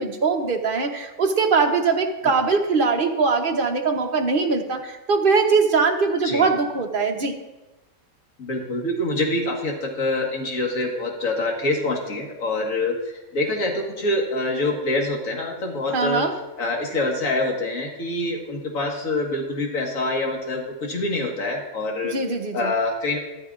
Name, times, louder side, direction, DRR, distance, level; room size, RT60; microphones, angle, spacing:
voice 1, 0.0-7.3 15.9-16.3 22.0-22.7, right 4 dB, 40° right, 3 dB, 1.0 m, -21 dB
voice 2, 8.4-13.0 13.3-16.3 16.6-22.2 22.5-23.2, left 2 dB, 60° left, 0 dB, 2.0 m, -25 dB
13.0 x 13.0 x 2.5 m, 1.0 s
omnidirectional pair, 1.6 m